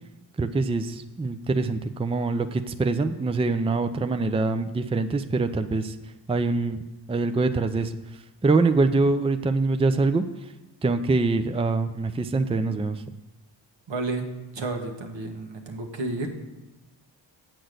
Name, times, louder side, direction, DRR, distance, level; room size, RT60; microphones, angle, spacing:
voice 1, 0.4-6.0 6.3-10.5 10.8-13.0, right 3 dB, 15° right, 9 dB, 0.5 m, -24 dB
voice 2, 13.9-16.3, right 2 dB, 75° right, 3 dB, 1.5 m, -31 dB
7.7 x 6.1 x 6.5 m, 1.1 s
cardioid pair, 55°, 45 cm